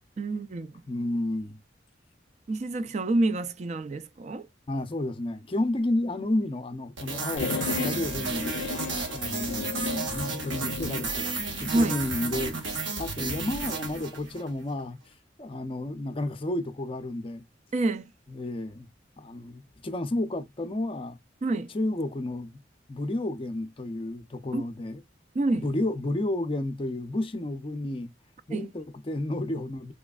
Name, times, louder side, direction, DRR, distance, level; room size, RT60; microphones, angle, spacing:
voice 1, 0.2-0.7 2.5-4.5 11.6-12.0 17.7-18.1 21.4-21.7 24.5-24.6 25.3-25.6 28.5-28.7, right 2 dB, 35° right, 0.4 m, -27 dB
voice 2, 0.9-1.6 4.7-8.5 9.1-17.4 18.3-18.9 19.2-21.2 21.7-22.6 22.9-25.0 25.6-28.1 28.5-29.9, left 1 dB, 30° left, 0.5 m, -31 dB
sound 1, 7.0-14.5, right 3 dB, 85° right, 1.4 m, -32 dB
sound 2, 7.4-11.1, left 5 dB, 85° left, 0.4 m, -35 dB
4.1 x 3.1 x 2.3 m
head